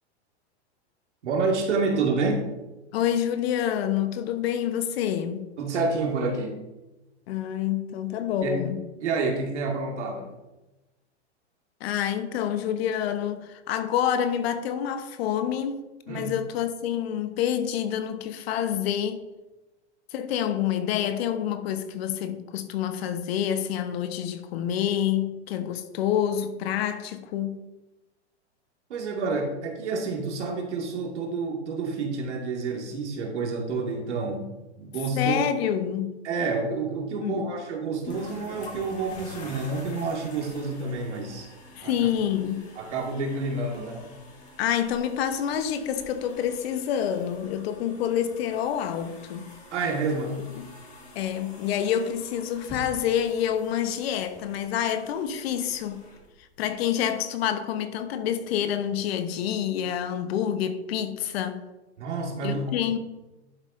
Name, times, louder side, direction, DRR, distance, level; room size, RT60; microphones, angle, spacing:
voice 1, 1.2-2.5 5.6-6.6 8.4-8.6 9.0-10.3 16.1-16.3 28.9-35.4 36.2-41.5 41.8-42.0 42.8-44.1 49.7-50.5 62.0-62.6, right 3 dB, 80° right, 2.1 m, -29 dB
voice 2, 2.9-5.4 7.3-8.8 11.8-19.2 20.1-27.6 35.2-36.1 37.2-37.5 41.8-42.6 44.6-49.5 50.6-50.7 51.1-56.0 56.6-61.6 62.4-63.0, left 9 dB, 60° left, 1.1 m, -27 dB
sound 1, 38.0-56.9, left 1 dB, 20° left, 2.3 m, -47 dB
11.0 x 7.1 x 2.6 m
hypercardioid pair, 120°, 34 cm